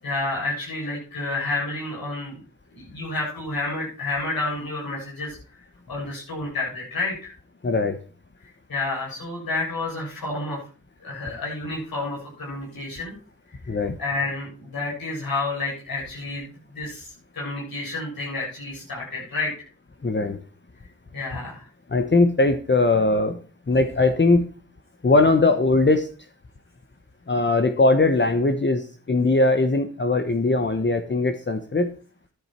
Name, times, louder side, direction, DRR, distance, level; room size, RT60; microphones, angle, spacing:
voice 1, 0.0-2.4 2.7-5.6 5.9-7.3 8.7-10.6 11.0-13.1 13.8-19.5 21.1-21.7, left 2 dB, 75° left, -5 dB, 7.5 m, -30 dB
voice 2, 7.6-8.0 13.7-14.0 20.0-20.4 21.9-23.4 23.7-24.4 25.0-26.1 27.3-31.9, left 2 dB, 30° left, 7 dB, 1.2 m, -20 dB
12.0 x 10.5 x 4.4 m, 0.38 s
cardioid pair, 45°, 36 cm